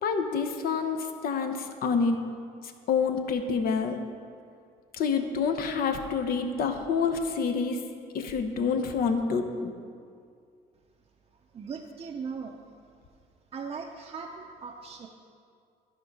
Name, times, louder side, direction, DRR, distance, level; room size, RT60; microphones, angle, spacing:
voice 1, 0.0-2.2 2.9-4.0 4.9-7.8 8.1-9.7, left 5 dB, 60° left, 6 dB, 0.9 m, -27 dB
voice 2, 11.5-12.6 13.5-15.1, right 5 dB, 35° right, 0 dB, 0.6 m, -38 dB
12.5 x 5.3 x 4.8 m, 2.3 s
cardioid pair, 110°, 17 cm